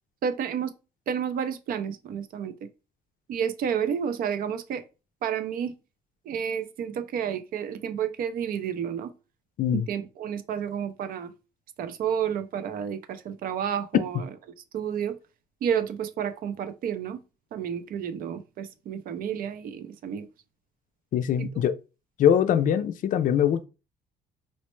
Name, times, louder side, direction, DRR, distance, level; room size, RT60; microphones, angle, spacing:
voice 1, 0.2-0.7 1.1-2.5 3.3-4.8 5.2-5.7 6.3-9.1 9.7-11.3 11.8-14.3 14.7-15.2 15.6-17.2 17.5-20.3 21.4-21.5, right 8 dB, 60° right, 0.5 m, -30 dB
voice 2, 21.1-21.7 22.2-23.7, left 9 dB, 50° left, 0.4 m, -22 dB
4.2 x 2.1 x 3.0 m
cardioid pair, 110°, 17 cm